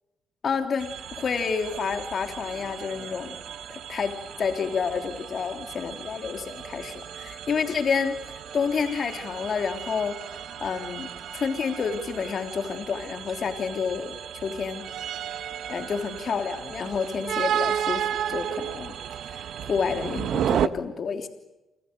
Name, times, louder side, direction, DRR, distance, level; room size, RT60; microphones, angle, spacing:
voice 1, 0.4-3.4 3.7-10.2 10.6-14.9 15.7-19.0 19.2-21.3, left 5 dB, 50° left, 6 dB, 3.2 m, -29 dB
sound 1, 0.8-20.7, right 9 dB, 70° right, 1.2 m, -34 dB
sound 2, 1.0-20.1, right 6 dB, 50° right, 7.5 m, -47 dB
29.5 x 26.5 x 6.8 m, 1.0 s
cardioid pair, 90°, 0 cm